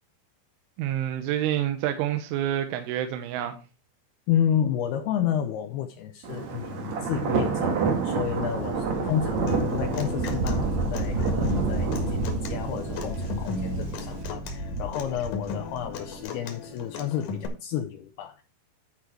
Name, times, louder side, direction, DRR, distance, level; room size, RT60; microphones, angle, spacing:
voice 1, 0.8-3.6, right 11 dB, 90° right, 3.3 m, -28 dB
voice 2, 4.3-18.4, left 9 dB, 85° left, 2.4 m, -31 dB
Thunder, 6.2-16.1, right 4 dB, 65° right, 1.8 m, -28 dB
Human voice / Acoustic guitar, 9.5-17.5, left 4 dB, 60° left, 2.5 m, -36 dB
12.0 x 4.9 x 4.4 m
omnidirectional pair, 5.5 m